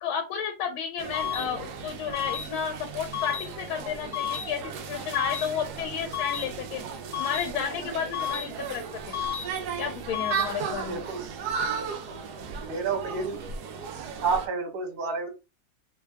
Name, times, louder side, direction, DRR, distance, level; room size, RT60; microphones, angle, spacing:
voice 1, 0.0-6.8 7.2-9.1 9.8-11.0, left 7 dB, 85° left, 5 dB, 1.4 m, -32 dB
sound 1, 1.0-14.5, right 6 dB, 70° right, 0.9 m, -36 dB
sound 2, 1.1-1.4 2.1-2.4 3.1-3.4 4.1-4.4 5.1-5.4 6.1-6.4 7.1-7.4 8.1-8.4 9.1-9.4 10.1-10.4, left 10 dB, 55° left, 0.7 m, -31 dB
voice 2, 10.9-11.2 12.6-13.8 14.2-15.3, right 4 dB, 55° right, 3 dB, 1.4 m, -30 dB
3.3 x 2.2 x 3.3 m, 0.28 s
omnidirectional pair, 2.2 m